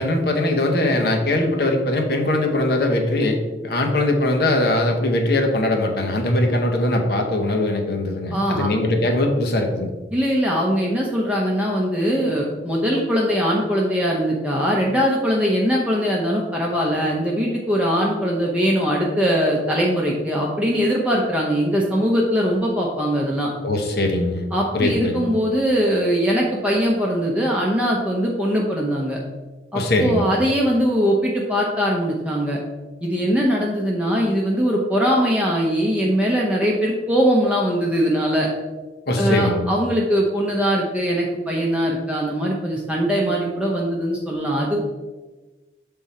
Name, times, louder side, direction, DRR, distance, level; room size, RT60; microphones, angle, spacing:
voice 1, 0.0-3.4 3.6-9.9 23.6-24.5 24.7-25.2 29.7-30.2 39.1-39.6, left 1 dB, 65° left, 3 dB, 0.9 m, -21 dB
voice 2, 8.3-8.7 10.1-23.5 24.5-29.2 29.7-32.6 33.0-38.5 39.2-44.8, equal, 5° right, -3 dB, 0.7 m, -21 dB
6.8 x 3.7 x 4.2 m, 1.2 s
head